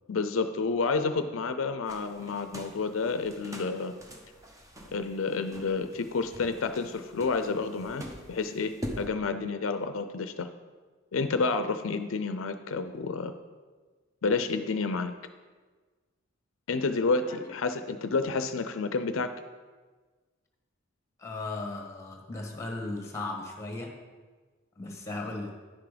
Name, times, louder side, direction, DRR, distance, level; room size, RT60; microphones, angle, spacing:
voice 1, 0.1-3.9 4.9-10.5 11.1-13.3 14.2-15.1 16.7-19.3, left 4 dB, 75° left, 9 dB, 0.5 m, -30 dB
sound 1, 1.9-9.1, equal, 15° right, 0.9 m, -44 dB
voice 2, 21.2-23.9 24.8-25.5, left 2 dB, 15° left, 2 dB, 1.4 m, -36 dB
10.0 x 5.9 x 5.0 m, 1.4 s
head